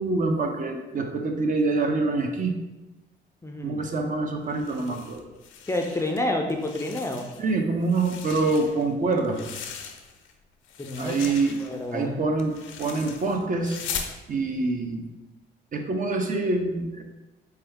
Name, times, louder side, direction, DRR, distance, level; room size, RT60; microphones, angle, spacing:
voice 1, 0.0-2.5 3.6-5.2 7.4-9.6 11.0-11.6 11.9-13.8 14.3-15.0 15.7-17.0, right 3 dB, 40° right, 3 dB, 0.6 m, -26 dB
voice 2, 3.4-3.9 5.7-7.3 10.8-11.3 11.6-12.2, left 1 dB, 15° left, 2 dB, 0.4 m, -29 dB
sound 1, 4.5-6.2 6.5-7.5 7.8-10.3 10.6-14.2, left 7 dB, 80° left, 0.5 m, -39 dB
4.3 x 2.3 x 3.5 m, 1.1 s
cardioid pair, 90°, 20 cm